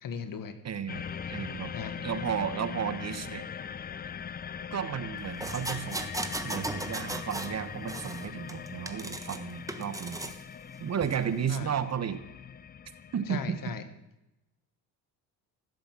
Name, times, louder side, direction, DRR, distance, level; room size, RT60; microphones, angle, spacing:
voice 1, 0.0-0.6 1.3-1.4 1.7-2.0 11.5-11.7 13.3-13.8, left 6 dB, 50° left, 11 dB, 1.5 m, -37 dB
voice 2, 0.6-1.7 2.0-3.4 4.7-6.1 6.4-10.3 10.8-12.2 13.1-13.6, right 8 dB, 40° right, 12 dB, 1.1 m, -33 dB
sound 1, 0.9-13.8, left 7 dB, 25° left, 0.5 m, -41 dB
sound 2, 5.4-7.6 7.9-9.4 9.7-10.4 11.0-11.2, right 2 dB, 10° right, 1.3 m, -37 dB
15.5 x 7.8 x 7.6 m, 0.93 s
cardioid pair, 95°, 41 cm